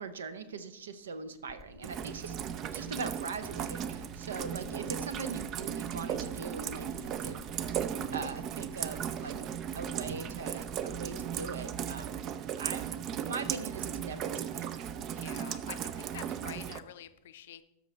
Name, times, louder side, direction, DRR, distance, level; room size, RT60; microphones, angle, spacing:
voice 1, 0.0-2.4 2.7-7.4 7.7-9.4 9.7-12.2 12.6-12.8 13.2-14.7, right 4 dB, 65° right, 12 dB, 0.8 m, -41 dB
sound 1, 1.5-11.5, left 5 dB, 10° left, 0.6 m, -55 dB
Rain, 1.8-16.8, right 9 dB, 35° right, 0.5 m, -36 dB
voice 2, 15.1-17.6, left 11 dB, 55° left, 13 dB, 0.5 m, -47 dB
13.0 x 6.0 x 4.2 m, 0.92 s
figure-of-eight pair, 90°, 0 cm